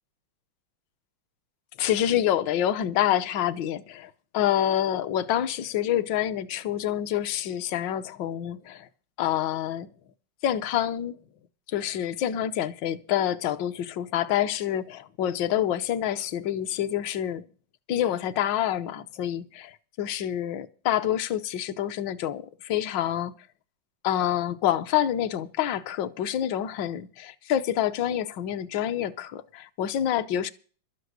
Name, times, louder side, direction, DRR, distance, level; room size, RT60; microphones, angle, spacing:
voice 1, 1.8-8.9 9.2-9.9 10.4-11.2 11.7-17.4 17.9-23.3 24.0-30.5, left 11 dB, 70° left, 1.5 m, -27 dB
13.0 x 7.9 x 8.0 m
omnidirectional pair, 2.2 m